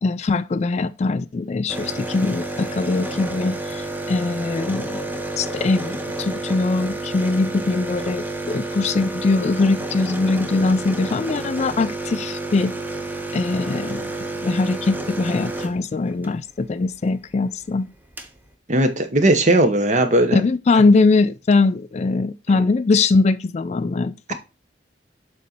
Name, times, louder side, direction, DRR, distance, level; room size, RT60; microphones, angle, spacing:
voice 1, 0.0-5.0 5.4-12.7 13.3-14.1 14.4-17.9 20.3-24.3, left 3 dB, 35° left, 0.3 m, -21 dB
sound 1, 1.7-16.3 17.6-17.7 17.9-18.3, right 2 dB, 10° right, 0.8 m, -30 dB
voice 2, 18.7-20.4, right 1 dB, 40° right, 1.0 m, -17 dB
7.4 x 4.0 x 4.3 m
head